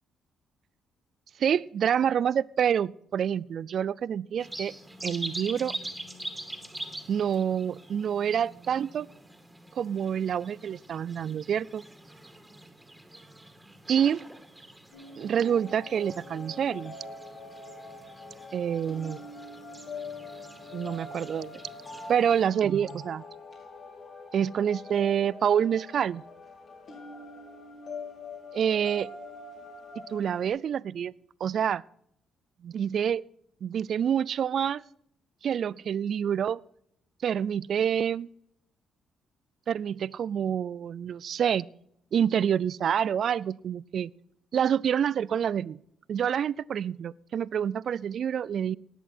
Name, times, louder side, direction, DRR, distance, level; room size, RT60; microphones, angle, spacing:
voice 1, 1.4-4.7 5.0-5.8 7.1-9.1 9.8-11.8 13.9-14.2 15.2-17.0 18.5-19.2 20.7-21.6 22.1-23.2 24.3-26.2 28.5-29.1 30.1-31.1 31.4-31.8 32.6-33.2 33.6-34.8 35.4-36.6 37.2-38.3 39.7-41.7 42.1-44.1 44.5-45.8 46.1-48.8, right 8 dB, 60° right, 21 dB, 0.4 m, -27 dB
sound 1, 4.4-22.5, right 1 dB, 5° right, 2.3 m, -44 dB
sound 2, 14.9-30.5, left 3 dB, 50° left, 6.0 m, -44 dB
18.0 x 8.1 x 4.4 m, 0.71 s
cardioid pair, 90°, 0 cm